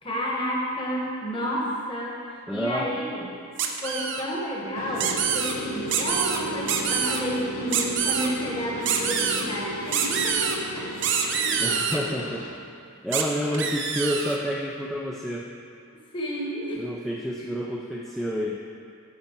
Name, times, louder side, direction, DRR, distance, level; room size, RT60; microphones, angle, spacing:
voice 1, 0.0-3.2 3.8-10.9 11.4-11.8 16.1-16.9 17.4-17.5, equal, 25° left, -3 dB, 1.2 m, -31 dB
voice 2, 2.5-3.0 11.6-12.5 13.0-15.5 16.8-18.6, equal, ahead, -3 dB, 0.3 m, -29 dB
sound 1, 3.6-4.2 5.0-5.5 5.9-6.4 6.7-7.2 7.7-8.3 8.9-9.4 9.9-10.6 11.0-12.0 13.1-13.2 13.5-14.4, right 7 dB, 55° right, 0.6 m, -26 dB
sound 2, 4.7-12.5, equal, 85° left, 1.0 m, -35 dB
11.0 x 4.2 x 4.5 m, 2.3 s
head